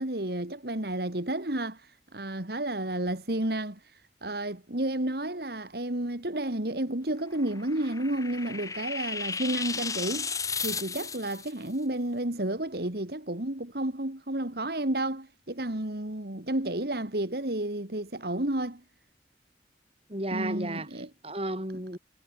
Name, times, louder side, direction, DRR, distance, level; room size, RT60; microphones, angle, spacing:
voice 1, 0.0-10.3 10.6-18.8 20.3-21.1, right 1 dB, 60° right, 2.3 m, -31 dB
sound 1, 7.4-11.5, left 5 dB, 20° left, 1.5 m, -34 dB
voice 2, 20.1-22.0, right 1 dB, 35° right, 7.2 m, -34 dB
head